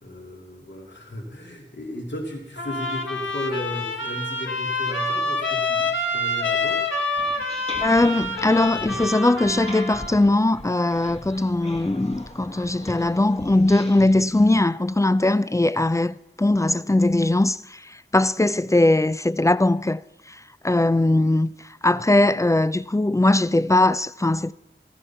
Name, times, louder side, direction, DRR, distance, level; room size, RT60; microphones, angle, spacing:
voice 1, 0.0-6.9, equal, 65° left, 2.6 m, -35 dB
Trumpet, 2.6-10.1, left 2 dB, 85° left, 2.1 m, -27 dB
sound 1, 7.2-14.6, left 1 dB, 30° left, 1.5 m, -40 dB
voice 2, 7.8-20.0 20.3-20.4 20.6-21.5 21.8-24.5, left 2 dB, 15° left, 0.4 m, -20 dB
14.5 x 14.0 x 5.7 m
wide cardioid pair, 55°, 20 cm